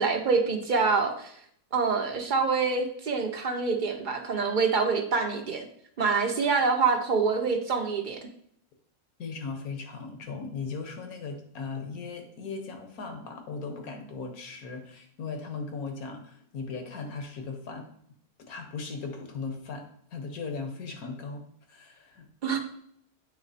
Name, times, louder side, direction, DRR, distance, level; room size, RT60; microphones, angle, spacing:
voice 1, 0.0-1.3 1.7-5.7 6.0-8.2 22.4-22.6, right 4 dB, 45° right, 3 dB, 0.7 m, -26 dB
voice 2, 9.2-17.9 18.5-19.8 20.1-21.4 21.7-22.3, left 4 dB, 85° left, 4 dB, 1.5 m, -37 dB
8.6 x 3.1 x 4.1 m, 0.67 s
omnidirectional pair, 1.5 m